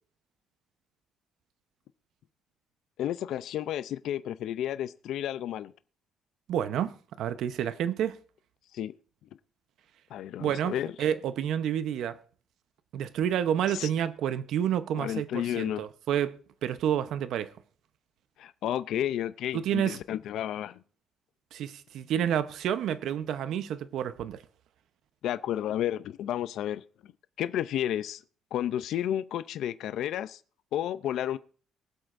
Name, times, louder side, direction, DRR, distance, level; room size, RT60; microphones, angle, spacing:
voice 1, 3.0-5.7 8.7-8.9 10.1-10.9 13.7-13.9 15.0-15.9 18.4-20.8 25.2-26.8 27.4-28.2 28.5-30.4 30.7-31.4, left 11 dB, 65° left, 0.4 m, -31 dB
voice 2, 6.5-8.2 10.4-12.2 12.9-17.5 19.5-20.0 21.5-24.4, right 9 dB, 60° right, 0.8 m, -29 dB
23.0 x 7.9 x 2.5 m
cardioid pair, 170°, 0 cm